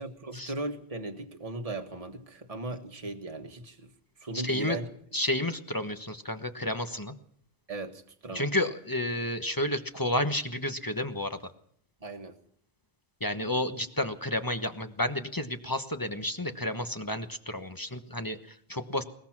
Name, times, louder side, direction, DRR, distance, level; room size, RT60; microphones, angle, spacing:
voice 1, 0.0-3.9 4.2-4.9 7.7-8.5 12.0-12.4, right 2 dB, 30° right, 5 dB, 1.6 m, -37 dB
voice 2, 4.3-4.8 5.1-7.1 8.3-11.4 13.2-19.0, left 1 dB, 15° left, 8 dB, 1.1 m, -31 dB
21.5 x 20.0 x 6.1 m, 0.65 s
omnidirectional pair, 1.3 m